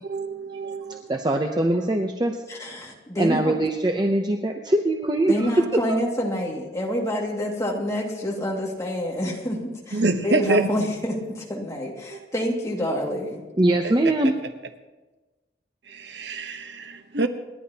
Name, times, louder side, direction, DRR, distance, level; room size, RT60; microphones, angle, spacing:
voice 1, 0.1-1.1 9.9-10.7 12.1-12.2 13.8-13.9 15.9-17.3, right 2 dB, 70° right, 7 dB, 1.0 m, -26 dB
voice 2, 0.9-2.4 3.2-5.5 5.9-6.0 13.6-14.3, right 1 dB, 25° right, 4 dB, 0.7 m, -22 dB
voice 3, 2.5-3.6 5.3-13.4, equal, 15° left, -2 dB, 2.2 m, -28 dB
28.5 x 11.0 x 2.9 m, 1.2 s
head